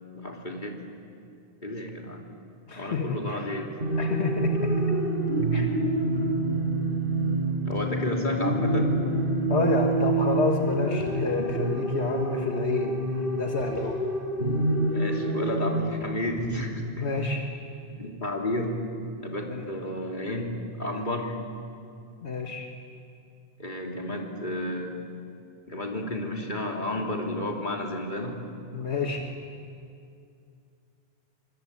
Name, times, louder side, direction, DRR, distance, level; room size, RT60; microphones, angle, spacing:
voice 1, 0.1-0.8 1.6-2.2 2.8-3.7 7.6-9.0 14.9-17.2 17.9-18.8 19.2-21.4 23.6-25.1 25.7-28.4, left 1 dB, 45° left, 0 dB, 3.5 m, -32 dB
voice 2, 2.7-3.4 4.0-5.0 5.5-5.7 9.5-14.0 17.0-17.4 19.5-19.6 22.2-22.7 28.7-29.3, left 4 dB, 80° left, 2 dB, 2.0 m, -29 dB
sound 1, 3.8-15.8, right 2 dB, 55° right, 5.0 m, -27 dB
26.5 x 25.0 x 8.6 m, 2.4 s
omnidirectional pair, 1.1 m